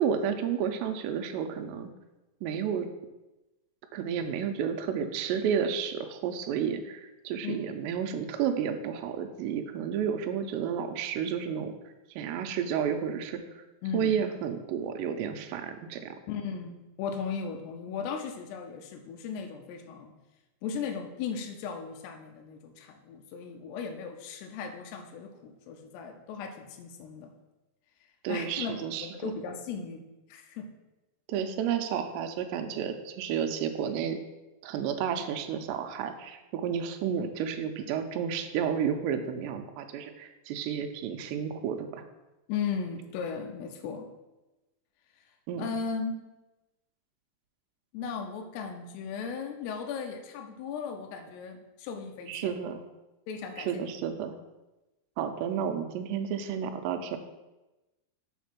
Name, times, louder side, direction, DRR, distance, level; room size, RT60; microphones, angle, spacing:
voice 1, 0.0-1.9 2.4-2.9 3.9-11.7 12.1-13.6 13.9-16.2 28.2-29.1 31.3-34.2 34.6-42.0 45.5-45.7 52.3-52.8 53.6-54.4 55.2-57.2, right 8 dB, 90° right, 6 dB, 2.8 m, -31 dB
voice 2, 13.8-14.2 16.3-20.1 20.6-27.3 28.3-30.7 42.5-44.1 45.6-46.2 47.9-52.5 53.3-53.9, left 6 dB, 85° left, 4 dB, 2.7 m, -37 dB
7.2 x 4.2 x 5.9 m, 1.0 s
omnidirectional pair, 4.9 m